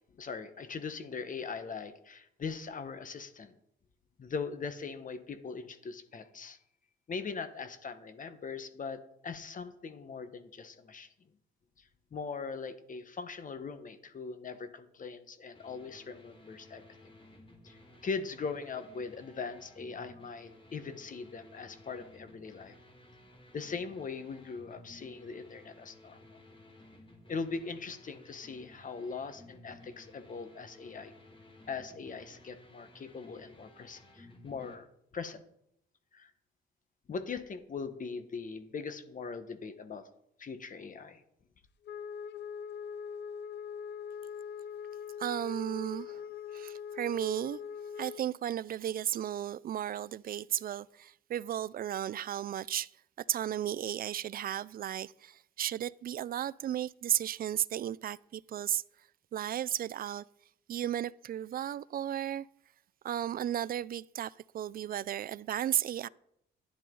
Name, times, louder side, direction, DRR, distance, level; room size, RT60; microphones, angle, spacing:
voice 1, 0.2-3.5 4.2-6.6 7.1-11.1 12.1-16.8 17.6-22.7 23.5-26.4 27.3-31.1 31.7-34.9 35.1-35.4 36.1-36.3 37.1-40.0 40.4-41.2, left 5 dB, 40° left, 1.3 m, -40 dB
sound 1, 15.5-34.8, left 1 dB, 25° left, 2.3 m, -56 dB
Wind instrument woodwind instrument, 41.8-48.3, left 7 dB, 60° left, 0.5 m, -42 dB
voice 2, 45.2-46.2 46.5-47.6 48.0-52.9 53.3-58.8 59.3-60.2 60.7-62.5 63.0-66.1, right 11 dB, 50° right, 0.4 m, -34 dB
12.0 x 10.0 x 3.9 m
cardioid pair, 90°, 20 cm